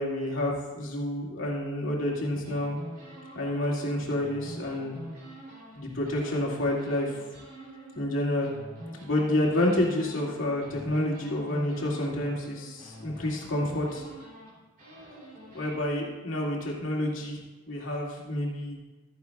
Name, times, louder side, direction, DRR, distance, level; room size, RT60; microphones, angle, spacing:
voice 1, 0.0-2.8 3.3-5.0 5.8-7.2 8.0-8.5 9.0-14.0 15.5-17.4 17.7-18.8, left 1 dB, 85° left, -3 dB, 2.2 m, -29 dB
sound 1, 2.4-5.8 6.0-15.8, equal, 45° right, 3.0 m, -45 dB
13.0 x 9.7 x 2.3 m, 1.1 s
head